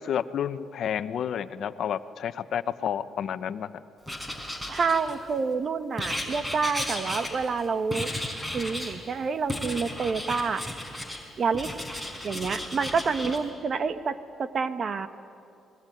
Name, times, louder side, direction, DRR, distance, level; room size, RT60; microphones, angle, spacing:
voice 1, 0.0-3.7, left 9 dB, 65° left, 13 dB, 0.9 m, -30 dB
Writing, 4.1-5.4 6.0-7.6 7.9-9.0 9.5-11.2 11.5-13.4, left 1 dB, 5° right, 4.6 m, -34 dB
voice 2, 4.7-8.1 8.5-10.6 11.4-11.7 12.2-15.1, right 5 dB, 50° right, 12 dB, 1.3 m, -28 dB
26.5 x 21.0 x 9.3 m, 2.6 s
cardioid pair, 90°, 0 cm